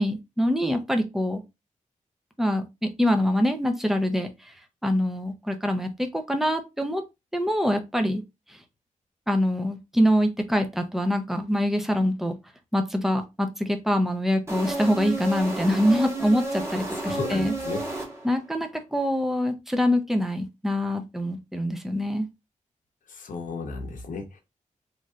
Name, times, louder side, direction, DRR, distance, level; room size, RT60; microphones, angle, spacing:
voice 1, 0.0-1.4 2.4-4.3 4.8-7.0 7.3-8.2 9.3-12.4 12.7-17.5 18.2-22.3, equal, 5° right, 0.5 m, -24 dB
sound 1, 14.5-18.5, right 2 dB, 20° right, 1.0 m, -32 dB
voice 2, 16.9-17.8 23.1-24.4, left 4 dB, 80° left, 0.7 m, -34 dB
3.1 x 2.6 x 2.3 m
wide cardioid pair, 130°, 13 cm